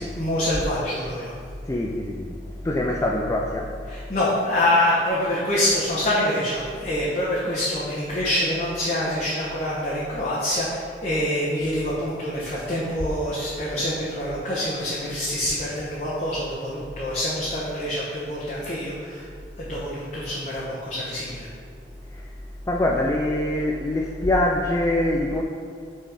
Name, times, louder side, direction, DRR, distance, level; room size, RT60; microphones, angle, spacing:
voice 1, 0.1-1.4 3.9-19.3 19.6-21.5, left 1 dB, 40° left, -9 dB, 1.1 m, -26 dB
voice 2, 1.6-3.8 22.1-22.3 22.7-25.4, left 1 dB, 15° left, 0 dB, 0.3 m, -24 dB
6.3 x 4.3 x 4.8 m, 2.2 s
head